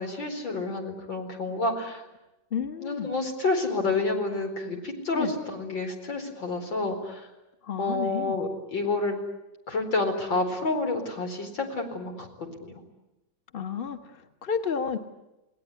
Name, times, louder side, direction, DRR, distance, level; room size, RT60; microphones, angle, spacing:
voice 1, 0.0-2.0 2.8-7.3 7.8-9.2 9.7-12.8, left 3 dB, 85° left, 4 dB, 5.2 m, -29 dB
voice 2, 2.5-3.1 5.1-5.3 7.6-8.4 13.5-15.0, left 7 dB, 30° left, 7 dB, 1.7 m, -31 dB
29.5 x 19.5 x 9.7 m, 0.97 s
omnidirectional pair, 2.0 m